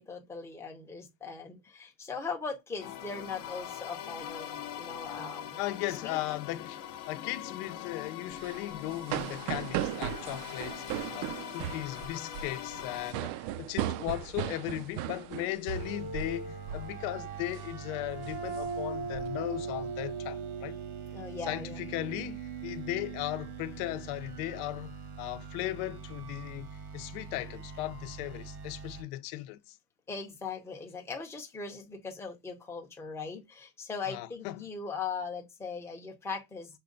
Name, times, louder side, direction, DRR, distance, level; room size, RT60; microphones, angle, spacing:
voice 1, 0.0-5.6 6.0-6.2 21.1-21.8 30.1-36.8, left 5 dB, 5° left, 0.6 m, -39 dB
sound 1, 2.8-13.1, left 10 dB, 50° left, 0.7 m, -42 dB
voice 2, 5.6-6.8 7.1-20.8 21.4-24.9 25.2-29.8 34.0-34.7, left 16 dB, 85° left, 0.7 m, -37 dB
sound 2, 8.3-16.4 16.7-16.9 17.3-17.6 18.1-19.2, right 11 dB, 60° right, 0.5 m, -37 dB
sound 3, 15.7-29.0, right 5 dB, 90° right, 1.6 m, -41 dB
6.2 x 2.2 x 3.8 m
cardioid pair, 170°, 42 cm